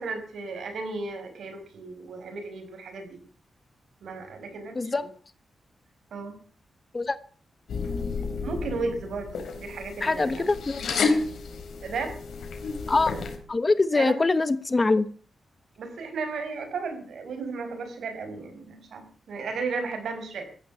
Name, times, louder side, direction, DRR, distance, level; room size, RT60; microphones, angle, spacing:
voice 1, 0.0-3.2 4.0-5.1 6.1-6.3 8.4-10.5 11.8-12.2 13.9-14.2 15.8-19.0 19.3-20.4, right 4 dB, 80° right, 6 dB, 5.6 m, -34 dB
voice 2, 4.7-5.1 6.9-7.2 10.0-10.8 12.9-13.1 13.5-15.1, left 3 dB, 30° left, 15 dB, 1.1 m, -23 dB
sound 1, 7.7-13.4, left 4 dB, 85° left, 4.2 m, -31 dB
14.5 x 11.5 x 8.4 m, 0.43 s
cardioid pair, 100°, 0 cm